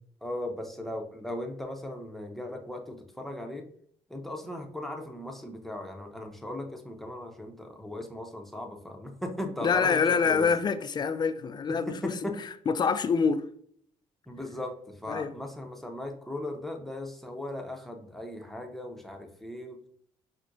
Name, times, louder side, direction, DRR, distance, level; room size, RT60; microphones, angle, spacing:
voice 1, 0.2-3.6 4.1-10.5 11.7-12.4 14.3-19.8, left 1 dB, ahead, 0.7 m, -38 dB
voice 2, 9.6-12.3 12.7-13.5 15.1-15.3, left 5 dB, 35° left, 0.3 m, -26 dB
6.0 x 2.1 x 2.6 m
cardioid pair, 85°, 12 cm